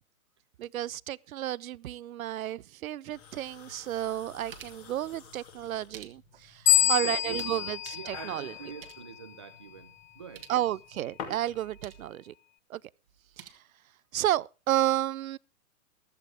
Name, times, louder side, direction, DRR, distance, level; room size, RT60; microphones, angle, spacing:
voice 1, 0.6-8.5 10.5-12.3 12.7-12.8 13.4-13.6 14.1-15.4, right 13 dB, 70° right, 0.6 m, -32 dB
sound 1, 3.0-11.6, left 6 dB, 25° left, 2.3 m, -49 dB
sound 2, 4.0-4.9 5.6-6.5 7.1-7.8 8.1-8.2 8.5-9.1 10.1-10.6 11.5-12.1 13.1-13.5, right 9 dB, 40° right, 1.4 m, -51 dB
sound 3, 6.7-9.1, left 12 dB, 60° left, 0.6 m, -27 dB
voice 2, 6.8-7.6 7.9-10.6, right 7 dB, 20° right, 0.6 m, -45 dB
14.5 x 13.5 x 3.4 m
hypercardioid pair, 175°, 44 cm